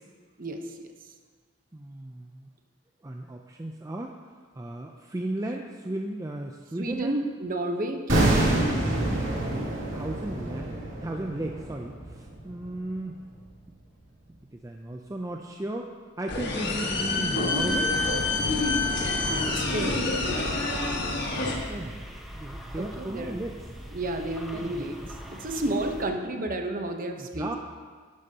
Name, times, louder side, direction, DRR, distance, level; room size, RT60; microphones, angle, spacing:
voice 1, 0.4-0.8 6.8-8.5 19.5-20.0 22.8-23.3 23.9-25.0 25.3-27.5, right 1 dB, 40° right, 4 dB, 0.9 m, -31 dB
voice 2, 1.7-2.5 3.0-4.1 4.6-7.2 9.1-13.2 14.5-18.0 21.7-23.6 24.5-25.1 27.2-27.5, right 1 dB, 15° right, 2 dB, 0.4 m, -35 dB
sound 1, 8.1-13.1 13.4-13.5, right 1 dB, 65° right, 2.4 m, -27 dB
sound 2, 16.3-21.5, left 3 dB, 55° left, 1.5 m, -27 dB
sound 3, 17.7-26.1, equal, ahead, 1.1 m, -41 dB
12.0 x 11.5 x 2.9 m, 1.6 s
head